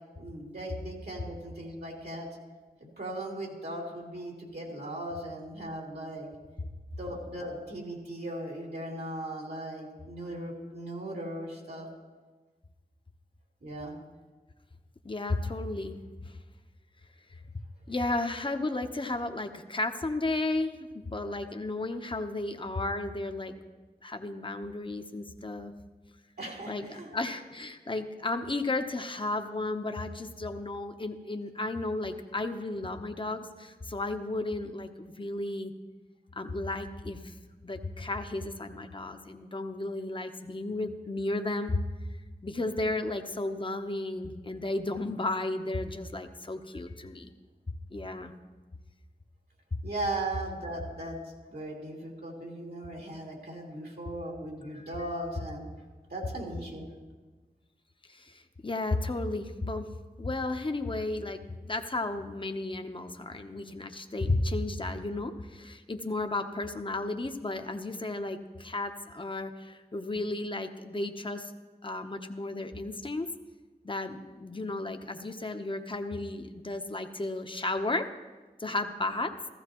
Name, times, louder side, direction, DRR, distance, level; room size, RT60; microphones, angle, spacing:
voice 1, 0.2-2.3 2.8-6.3 7.0-11.9 13.6-14.0 26.4-27.1 49.8-51.2 51.5-55.6 56.1-56.9, right 1 dB, 80° right, -2 dB, 2.8 m, -38 dB
voice 2, 15.0-16.0 17.9-23.5 24.0-25.7 26.7-35.7 36.4-37.3 37.6-41.8 42.4-47.3 47.9-48.3 51.0-51.1 54.6-54.9 58.1-59.9 60.2-71.5 71.8-73.3 73.8-78.1 78.6-79.3, left 2 dB, 30° left, 6 dB, 0.9 m, -33 dB
14.5 x 14.5 x 3.0 m, 1.3 s
cardioid pair, 40°, 16 cm